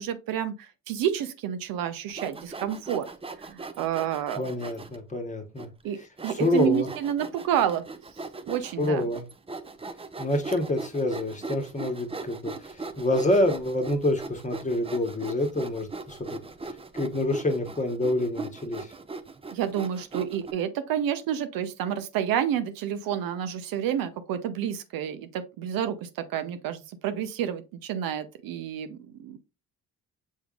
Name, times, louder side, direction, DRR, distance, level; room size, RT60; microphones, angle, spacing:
voice 1, 0.0-3.1 3.4-4.4 5.8-7.8 8.5-9.1 19.5-29.4, right 9 dB, 75° right, 0.7 m, -29 dB
Sawing, 2.1-5.0 5.6-5.7 6.2-20.5, right 3 dB, 15° right, 0.5 m, -39 dB
voice 2, 4.4-5.7 6.3-6.9 8.8-9.2 10.2-16.4 16.9-18.9, left 1 dB, 20° left, 1.2 m, -27 dB
6.3 x 3.5 x 2.4 m
supercardioid pair, 75°, 35 cm